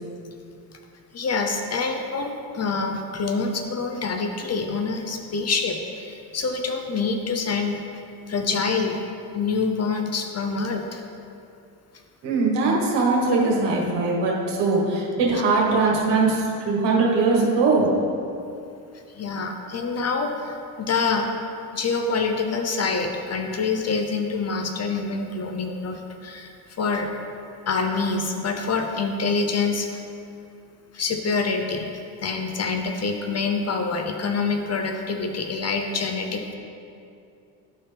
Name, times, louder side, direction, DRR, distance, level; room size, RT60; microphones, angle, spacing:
voice 1, 1.1-7.8 8.3-9.0 9.3-11.0 19.2-21.3 21.7-27.1 27.7-30.0 30.9-31.9 32.2-36.6, left 4 dB, 40° left, 4 dB, 0.6 m, -26 dB
voice 2, 12.2-17.9, right 3 dB, 85° right, -3 dB, 1.6 m, -21 dB
11.0 x 4.3 x 3.4 m, 2.6 s
cardioid pair, 95°, 41 cm